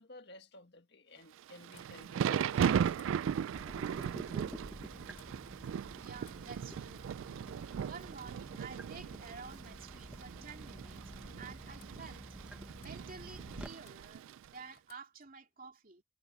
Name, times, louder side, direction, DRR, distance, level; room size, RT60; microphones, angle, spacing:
voice 1, 0.0-3.1, left 2 dB, 60° left, 1.9 m, -55 dB
Thunder / Rain, 1.4-14.5, right 8 dB, 85° right, 0.3 m, -37 dB
sound 1, 1.6-3.5 3.9-4.6 5.0-5.7 6.1-6.9 7.9-8.1 8.4-8.8 10.8-10.9 11.1-11.2 11.6-12.3 12.7-13.4 13.7-14.3 14.7-15.4, left 9 dB, 75° left, 3.4 m, -68 dB
Water tap faucet / Drip, 3.5-13.7, equal, 5° right, 0.9 m, -50 dB
voice 2, 6.0-7.1 7.8-11.0 11.3-12.3 12.8-16.0, right 5 dB, 45° right, 2.8 m, -51 dB
head